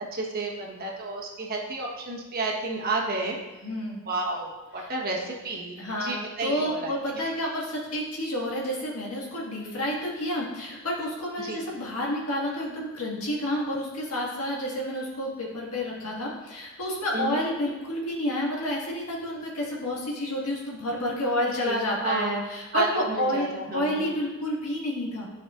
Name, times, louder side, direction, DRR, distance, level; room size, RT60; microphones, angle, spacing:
voice 1, 0.1-3.4 4.1-7.3 11.4-11.6 17.1-17.4 21.6-22.4 22.7-24.1, right 3 dB, 45° right, -2 dB, 1.2 m, -31 dB
voice 2, 3.6-4.0 4.8-4.9 5.8-25.3, left 1 dB, 75° left, -4 dB, 1.7 m, -30 dB
10.0 x 4.9 x 2.5 m, 1.1 s
head